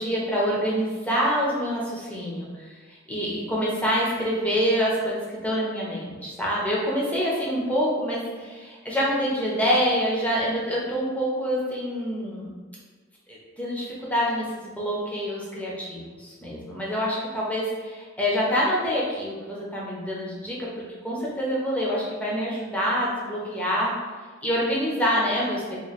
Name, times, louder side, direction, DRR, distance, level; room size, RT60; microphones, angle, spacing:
voice 1, 0.0-12.5 13.3-20.7 21.0-23.9 24.4-25.8, equal, 5° left, -6 dB, 0.7 m, -26 dB
3.0 x 2.2 x 4.1 m, 1.4 s
head